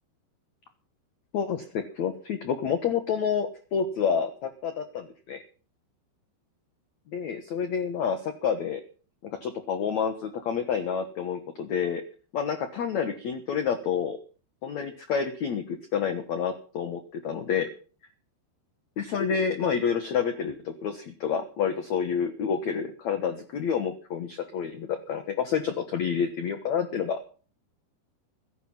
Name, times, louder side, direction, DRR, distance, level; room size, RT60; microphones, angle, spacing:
voice 1, 1.3-5.4 7.1-8.8 9.2-12.0 12.3-14.2 14.6-17.7 19.0-27.3, left 7 dB, 70° left, 9 dB, 1.7 m, -29 dB
16.0 x 12.0 x 5.8 m, 0.39 s
omnidirectional pair, 5.1 m